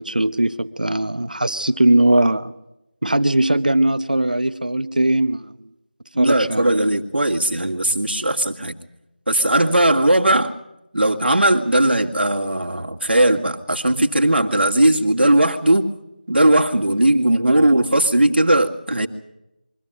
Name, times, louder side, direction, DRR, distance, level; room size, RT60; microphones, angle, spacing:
voice 1, 0.0-2.5 3.0-5.5 6.2-6.6, right 1 dB, 55° right, 12 dB, 1.0 m, -19 dB
voice 2, 6.1-8.8 9.3-10.5 10.9-15.9 16.3-19.1, right 1 dB, 85° right, 3 dB, 2.4 m, -18 dB
24.0 x 14.0 x 9.1 m, 0.91 s
figure-of-eight pair, 180°, 6 cm